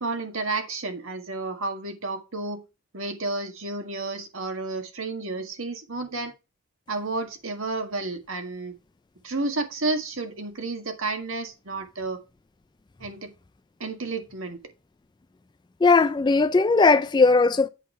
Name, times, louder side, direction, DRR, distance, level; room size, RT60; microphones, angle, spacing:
voice 1, 0.0-2.6 2.9-6.3 6.9-8.7 9.2-12.2 13.0-13.3 13.8-14.6, right 3 dB, 70° right, 1.7 m, -31 dB
voice 2, 15.8-17.7, left 3 dB, 20° left, 0.3 m, -18 dB
8.3 x 5.4 x 4.1 m
head